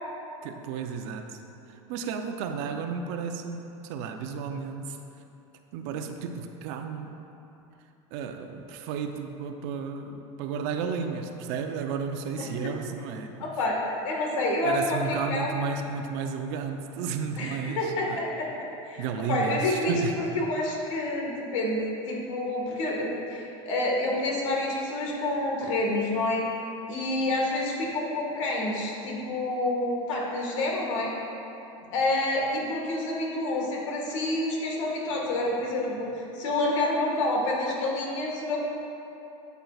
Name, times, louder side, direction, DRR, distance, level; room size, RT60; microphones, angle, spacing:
voice 1, 0.4-1.4 1.7-5.0 5.7-7.2 8.1-13.3 14.6-18.2 19.0-20.1, right 6 dB, 65° right, 6 dB, 0.6 m, -33 dB
voice 2, 12.4-12.7 13.4-15.5 17.4-31.1 31.9-38.6, left 2 dB, 85° left, -2 dB, 1.6 m, -28 dB
8.7 x 8.0 x 2.4 m, 2.9 s
supercardioid pair, 120°, 16 cm